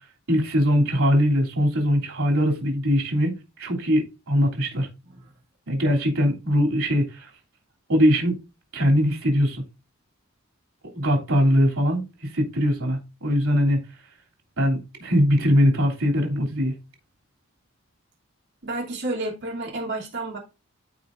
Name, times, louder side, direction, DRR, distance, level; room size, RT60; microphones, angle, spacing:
voice 1, 0.3-3.3 3.6-4.9 5.7-7.3 7.9-8.4 8.7-9.6 10.9-13.8 14.6-16.7, equal, 85° right, 3.2 m, -21 dB
voice 2, 18.6-20.4, right 2 dB, 55° right, 3.0 m, -31 dB
14.0 x 4.8 x 2.6 m
head